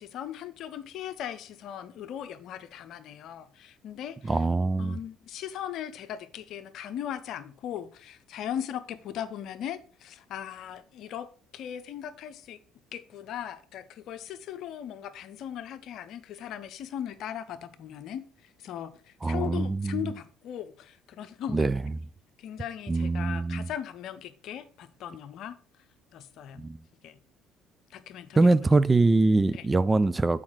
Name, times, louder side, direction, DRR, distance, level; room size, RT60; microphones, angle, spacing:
voice 1, 0.0-4.4 4.8-12.6 12.9-18.3 18.6-21.8 22.4-25.6 26.1-26.7 27.0-27.2 27.9-28.5 29.5-29.7, left 10 dB, 60° left, 0.7 m, -38 dB
voice 2, 4.2-5.0 19.2-20.1 21.5-21.8 22.9-23.7 26.6-26.8 28.4-30.4, right 3 dB, 20° right, 0.5 m, -23 dB
7.1 x 4.9 x 4.6 m
hypercardioid pair, 55°, 0 cm